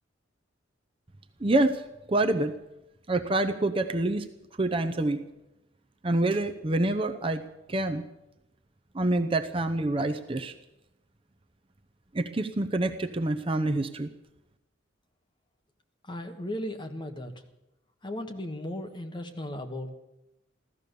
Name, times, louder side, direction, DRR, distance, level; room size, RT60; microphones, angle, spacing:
voice 1, 1.4-1.8 2.1-2.5 3.1-4.3 4.6-5.2 6.0-7.4 7.7-8.0 8.9-10.5 12.1-14.1, right 2 dB, 30° right, 7 dB, 0.7 m, -26 dB
voice 2, 16.0-17.3 18.0-19.9, left 1 dB, 25° left, 4 dB, 1.4 m, -36 dB
16.0 x 13.5 x 6.7 m, 0.91 s
head